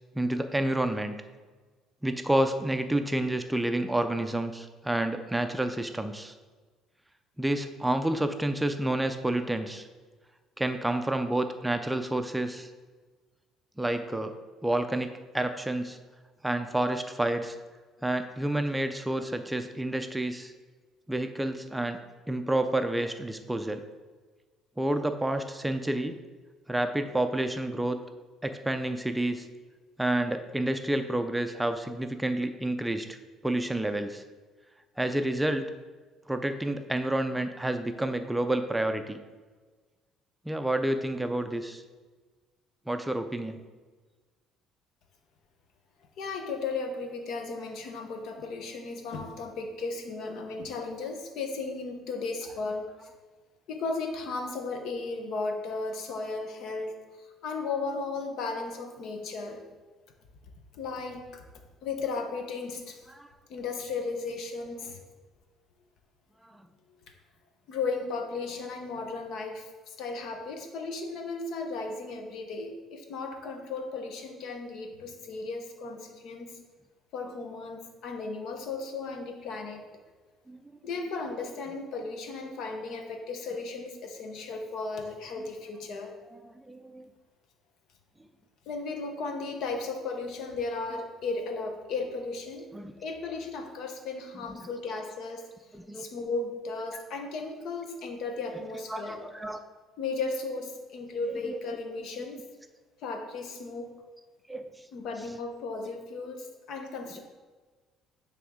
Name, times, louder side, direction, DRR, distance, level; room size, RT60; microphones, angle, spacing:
voice 1, 0.2-1.2 2.0-6.3 7.4-9.9 10.6-12.7 13.8-14.3 14.6-15.1 15.3-16.0 16.4-17.6 18.0-20.5 21.1-22.0 22.3-23.8 24.8-26.2 26.7-28.0 28.4-29.5 30.0-33.2 33.4-34.2 35.0-35.7 36.3-39.2 40.5-41.8 42.9-43.6 63.2-63.3 66.5-66.6 80.5-80.6 86.3-87.1 92.7-92.9 94.6-94.7 95.7-96.0 96.9-97.0 98.9-99.6 101.3-101.6 104.5-104.7, right 1 dB, 10° right, 8 dB, 0.4 m, -29 dB
voice 2, 46.2-53.1 53.7-59.6 60.7-61.4 61.8-63.0 63.5-65.0 67.7-76.6 77.1-79.9 80.8-86.2 88.7-92.7 93.0-95.5 95.9-99.2 100.0-102.4 103.0-103.9 104.9-107.2, left 3 dB, 70° left, 5 dB, 0.9 m, -35 dB
8.9 x 3.5 x 3.7 m, 1.4 s
cardioid pair, 100°, 0 cm